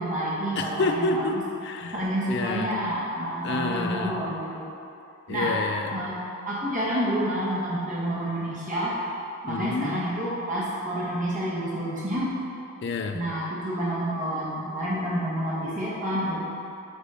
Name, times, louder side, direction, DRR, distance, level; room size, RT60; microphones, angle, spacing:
voice 1, 0.0-1.4 1.9-4.7 5.3-5.6 5.9-9.0 9.4-12.4 13.1-16.4, right 1 dB, 35° right, -8 dB, 1.3 m, -29 dB
voice 2, 0.6-2.0 2.3-2.7 3.4-4.1 5.3-5.9 9.5-10.0 12.8-13.2, left 3 dB, 50° left, 5 dB, 0.4 m, -28 dB
7.3 x 4.2 x 3.7 m, 2.6 s
head